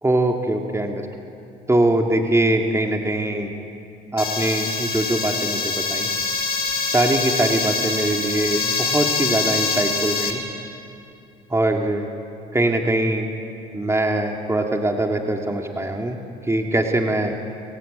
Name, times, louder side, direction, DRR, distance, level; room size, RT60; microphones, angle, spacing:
voice 1, 0.0-1.1 1.7-3.5 4.1-6.1 6.9-10.4 11.5-12.1 12.5-13.3 13.7-17.3, right 1 dB, 15° right, 2 dB, 2.5 m, -22 dB
sound 1, 4.2-10.3, left 4 dB, 50° left, 4.2 m, -24 dB
28.0 x 15.5 x 9.1 m, 2.7 s
supercardioid pair, 70°, 21 cm